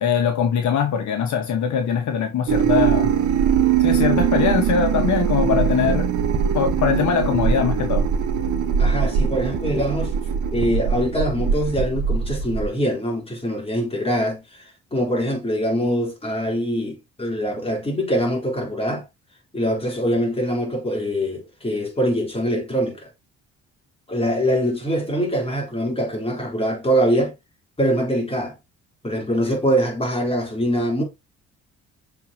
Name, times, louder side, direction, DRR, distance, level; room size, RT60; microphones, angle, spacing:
voice 1, 0.0-3.1 3.8-6.1 6.5-8.0, left 7 dB, 70° left, 1.6 m, -22 dB
sound 1, 2.5-12.7, right 7 dB, 75° right, 1.5 m, -21 dB
voice 2, 8.8-10.1 10.5-14.6 14.9-19.1 19.5-23.1 24.1-27.3 27.8-28.5 29.0-31.0, equal, 20° left, 4.0 m, -23 dB
7.1 x 4.7 x 3.0 m
cardioid pair, 90°, 30 cm